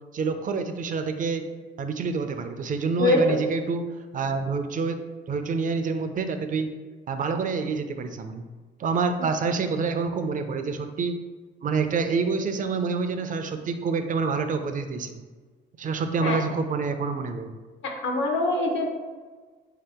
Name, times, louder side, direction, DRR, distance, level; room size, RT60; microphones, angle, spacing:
voice 1, 0.1-1.5 1.8-3.8 4.1-5.0 5.3-6.7 7.1-8.4 8.8-11.2 11.6-15.1 15.8-17.5, right 4 dB, 40° right, 8 dB, 0.4 m, -27 dB
voice 2, 18.0-18.9, left 2 dB, 75° left, 2 dB, 0.7 m, -23 dB
3.4 x 2.8 x 3.4 m, 1.4 s
cardioid pair, 90°, 20 cm